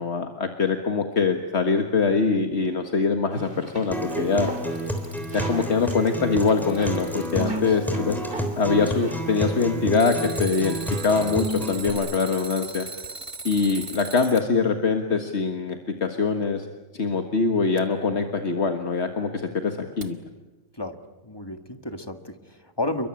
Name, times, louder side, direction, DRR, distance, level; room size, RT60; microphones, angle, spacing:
voice 1, 0.0-4.5 5.3-8.2 8.6-10.8 11.0-12.9 13.4-16.7 16.9-20.2, left 4 dB, 70° left, 5 dB, 1.9 m, -23 dB
sound 1, 3.3-11.3, right 2 dB, 50° right, 3.9 m, -41 dB
Acoustic guitar, 3.9-11.9, equal, ahead, 3.7 m, -29 dB
Alarm, 4.6-5.6 6.2-7.6 9.9-14.5 17.8-17.9 20.0-20.1, right 3 dB, 25° right, 1.7 m, -38 dB
voice 2, 7.4-7.8 20.7-23.1, left 2 dB, 20° left, 7 dB, 1.8 m, -32 dB
29.0 x 23.0 x 8.9 m, 1.1 s
omnidirectional pair, 1.2 m